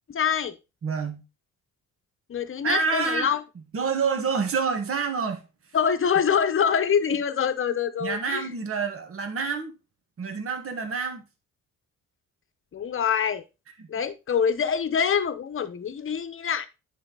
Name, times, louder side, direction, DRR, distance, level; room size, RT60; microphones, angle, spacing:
voice 1, 0.1-0.6 2.3-3.4 5.7-8.5 12.7-13.4 13.9-16.7, left 7 dB, 45° left, 1.0 m, -25 dB
voice 2, 0.8-1.2 2.6-3.3 3.7-5.5 8.0-9.7 10.2-11.2 13.8-13.9, right 5 dB, 45° right, 1.7 m, -27 dB
10.0 x 4.5 x 4.0 m
cardioid pair, 90°, 30 cm